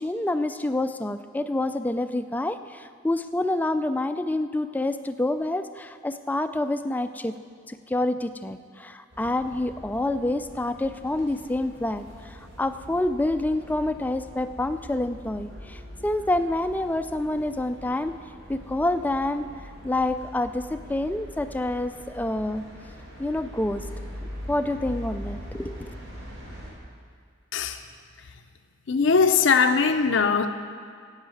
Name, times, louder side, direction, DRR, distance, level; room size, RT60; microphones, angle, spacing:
voice 1, 0.0-7.3 7.7-18.2 18.5-19.5 19.8-22.6 23.2-23.9 24.5-25.9, left 1 dB, 10° left, 9 dB, 0.3 m, -27 dB
sound 1, 9.1-26.7, equal, 90° right, 3.9 m, -42 dB
voice 2, 28.9-30.5, left 5 dB, 65° left, 8 dB, 0.5 m, -21 dB
10.5 x 8.1 x 7.7 m, 2.1 s
head